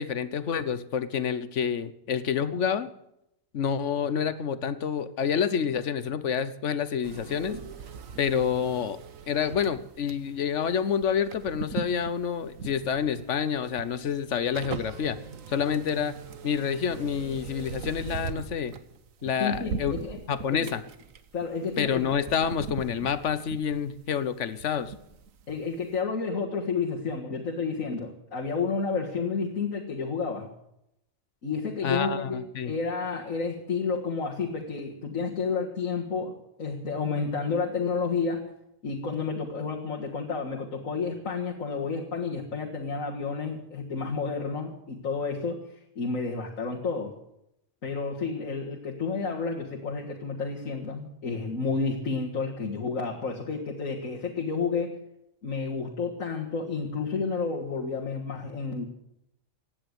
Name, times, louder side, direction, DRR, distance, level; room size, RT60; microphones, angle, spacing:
voice 1, 0.0-2.9 3.5-7.6 8.2-9.0 9.3-15.2 15.5-16.2 16.4-18.8 19.2-19.9 20.3-20.8 21.8-24.9 31.8-32.7, left 7 dB, 65° left, 14 dB, 1.2 m, -28 dB
sound 1, 7.0-25.7 25.9-26.0, right 6 dB, 85° right, 1.4 m, -41 dB
voice 2, 19.4-20.2 20.5-20.7 21.3-22.0 25.5-30.5 31.4-38.5 38.8-45.6 46.0-47.1 47.8-55.0 55.4-58.8, left 4 dB, 85° left, -2 dB, 2.1 m, -31 dB
17.0 x 9.8 x 8.1 m, 0.81 s
omnidirectional pair, 1.4 m